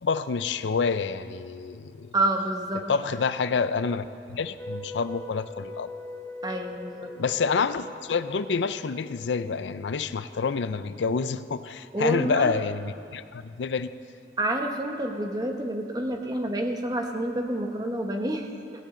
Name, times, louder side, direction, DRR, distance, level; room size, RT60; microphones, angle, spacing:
voice 1, 0.0-2.1 2.9-5.9 7.2-13.9, left 5 dB, 85° left, 13 dB, 0.5 m, -28 dB
voice 2, 2.1-2.9 6.4-7.1 11.9-12.6 14.4-18.5, right 1 dB, 20° right, 3 dB, 1.1 m, -28 dB
sound 1, 4.6-9.8, left 2 dB, 10° left, 0.8 m, -41 dB
17.0 x 16.5 x 3.8 m, 2.4 s
head